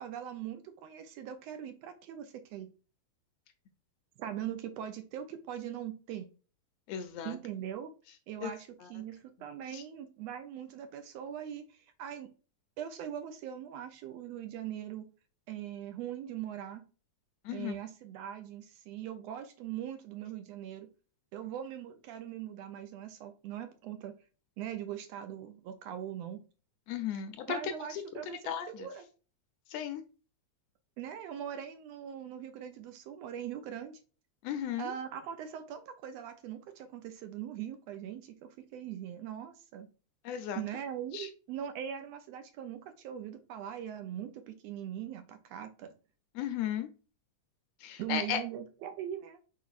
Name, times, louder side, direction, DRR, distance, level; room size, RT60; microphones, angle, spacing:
voice 1, 0.0-2.7 4.2-6.3 7.2-7.9 8.3-12.3 12.8-15.1 15.5-16.8 17.5-20.9 21.3-24.1 24.6-26.4 27.5-29.1 31.0-34.0 34.8-39.9 40.6-45.9 48.0-49.4, right 10 dB, 80° right, 1.6 m, -41 dB
voice 2, 6.9-7.4 8.4-8.5 8.8-8.9 9.7-9.8 17.4-17.7 26.9-27.6 27.9-28.9 29.7-30.0 34.4-34.9 40.2-40.6 41.1-41.3 46.3-46.9 47.8-48.4, left 9 dB, 80° left, 1.5 m, -35 dB
4.7 x 4.5 x 2.4 m
omnidirectional pair, 3.3 m